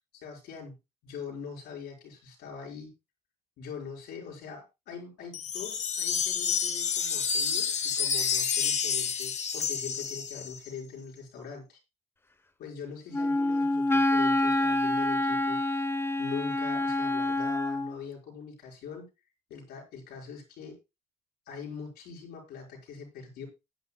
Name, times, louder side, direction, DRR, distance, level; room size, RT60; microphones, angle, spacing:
voice 1, 0.1-0.7 1.0-2.9 3.6-11.8 12.6-15.8 16.2-19.0 19.5-20.8 21.5-23.5, left 6 dB, 75° left, -1 dB, 5.7 m, -42 dB
sound 1, 5.3-10.7, left 7 dB, 45° left, 1.3 m, -29 dB
Wind instrument woodwind instrument, 13.1-17.9, left 2 dB, 15° left, 1.0 m, -27 dB
19.0 x 9.7 x 2.3 m, 0.25 s
cardioid pair, 110°, 17 cm